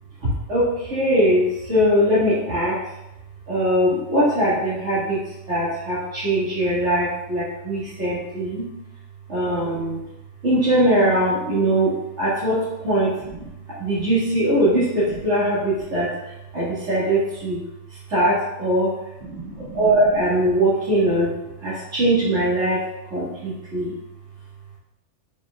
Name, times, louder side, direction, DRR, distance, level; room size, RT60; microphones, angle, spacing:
voice 1, 0.2-3.0 3.5-8.7 9.3-10.0 10.4-23.9, right 1 dB, 65° right, -11 dB, 2.4 m, -22 dB
8.7 x 4.8 x 2.4 m, 0.89 s
omnidirectional pair, 1.3 m